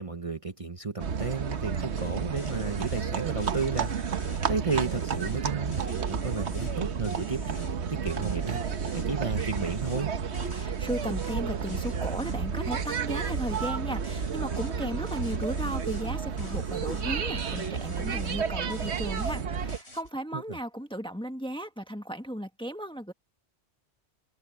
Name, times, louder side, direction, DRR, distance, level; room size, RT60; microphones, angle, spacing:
voice 1, 0.0-3.9 4.5-8.6 8.9-10.1 20.3-20.4, right 4 dB, 30° right, 1.2 m, -33 dB
sound 1, 1.0-19.8, right 6 dB, 75° right, 1.3 m, -31 dB
sound 2, 2.0-2.1 2.4-3.1 3.4-5.4 5.7-6.8 7.0-7.7 8.1-9.1 9.4-11.4 11.7-12.4 12.7-13.8 14.0-14.8 15.1-16.1 16.4-17.1 17.4-18.4 18.7-19.4 19.7-20.1, left 1 dB, 65° left, 6.9 m, -48 dB
voice 2, 10.5-23.1, equal, 5° left, 1.4 m, -35 dB
omnidirectional pair, 1.2 m